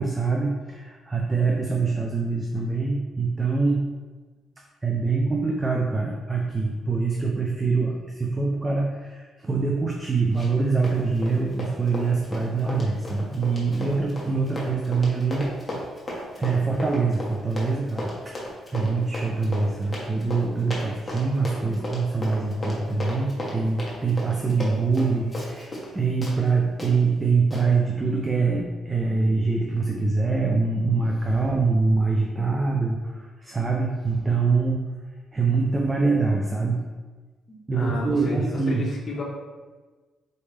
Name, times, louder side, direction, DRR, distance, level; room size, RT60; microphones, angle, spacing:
voice 1, 0.0-3.8 4.8-15.5 16.4-18.3 18.7-34.8 35.3-36.8 37.7-38.8, right 4 dB, 25° right, 0 dB, 0.5 m, -24 dB
Run, 10.3-10.6 10.8-25.9 26.2-26.4 26.8-26.9 27.5-27.6, left 1 dB, 20° left, 1.3 m, -35 dB
voice 2, 37.5-39.2, left 2 dB, 50° left, -2 dB, 1.0 m, -31 dB
4.1 x 3.3 x 3.3 m, 1.3 s
cardioid pair, 90°, 0 cm